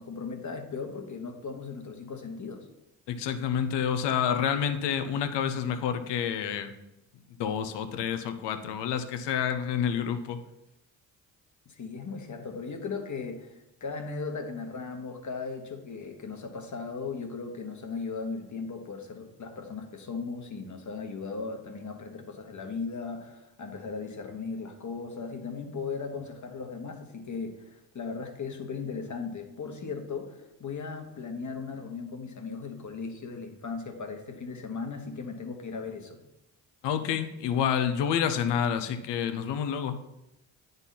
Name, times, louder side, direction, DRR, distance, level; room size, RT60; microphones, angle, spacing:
voice 1, 0.0-2.7 11.6-13.5 13.8-36.2, left 4 dB, 45° left, 5 dB, 1.4 m, -37 dB
voice 2, 3.1-6.7 7.4-10.4 36.8-40.0, left 8 dB, 75° left, 9 dB, 0.8 m, -28 dB
9.8 x 4.0 x 4.1 m, 0.90 s
supercardioid pair, 55°, 42 cm